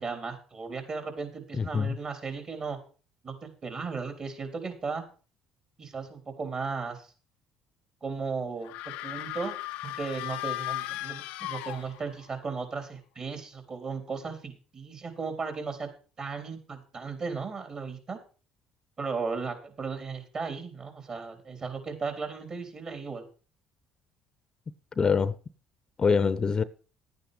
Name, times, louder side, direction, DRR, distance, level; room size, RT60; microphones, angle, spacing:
voice 1, 0.0-2.8 3.2-5.0 5.8-7.1 8.0-9.5 9.8-15.9 16.2-18.2 19.0-23.3, right 4 dB, 40° right, 3.6 m, -36 dB
voice 2, 1.6-2.0 25.0-25.3 26.0-26.6, left 5 dB, 35° left, 0.7 m, -24 dB
sound 1, 8.6-12.3, left 16 dB, 75° left, 0.5 m, -36 dB
11.0 x 9.2 x 5.2 m
hypercardioid pair, 65°, 2 cm